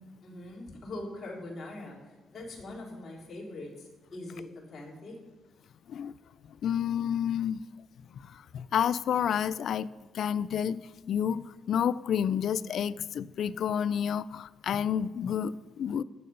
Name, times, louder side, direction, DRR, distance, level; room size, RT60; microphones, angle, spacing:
voice 1, 0.2-5.2, left 2 dB, 45° left, -4 dB, 3.5 m, -42 dB
voice 2, 6.6-7.6 8.1-9.9 10.1-10.8 11.1-16.0, left 8 dB, 65° left, 18 dB, 0.4 m, -30 dB
10.5 x 8.5 x 5.5 m, 1.2 s
cardioid pair, 90°, 0 cm